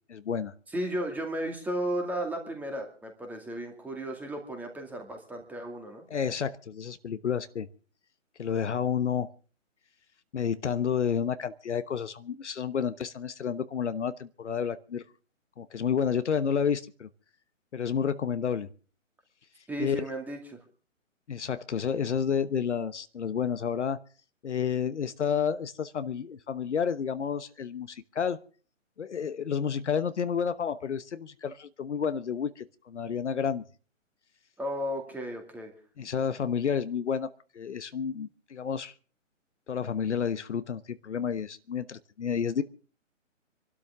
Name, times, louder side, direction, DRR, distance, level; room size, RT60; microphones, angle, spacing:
voice 1, 0.1-0.5 6.1-7.7 8.4-9.3 10.3-15.0 15.6-17.1 17.7-18.7 19.8-20.1 21.3-24.0 24.4-28.4 29.0-33.6 36.0-37.3 37.5-38.9 39.7-42.6, left 7 dB, 60° left, 12 dB, 1.1 m, -30 dB
voice 2, 0.7-6.0 19.7-20.6 34.6-35.7, right 1 dB, 5° right, 3 dB, 2.4 m, -34 dB
26.5 x 12.5 x 3.6 m, 0.40 s
figure-of-eight pair, 145°, 39 cm